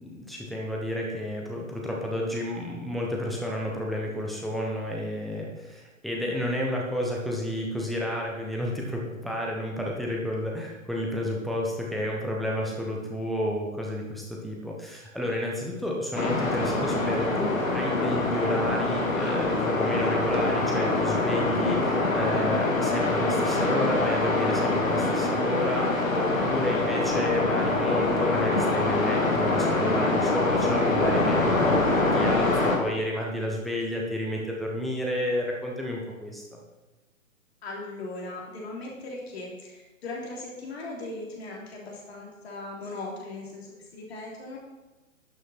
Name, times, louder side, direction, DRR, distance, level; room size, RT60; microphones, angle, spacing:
voice 1, 0.0-32.5 32.8-36.6, left 1 dB, ahead, -3 dB, 1.1 m, -31 dB
sound 1, 16.1-32.8, left 2 dB, 70° left, 2.1 m, -25 dB
voice 2, 37.6-43.7 43.9-44.6, left 2 dB, 50° left, -3 dB, 3.4 m, -38 dB
12.0 x 6.5 x 4.4 m, 1.1 s
figure-of-eight pair, 125°, 41 cm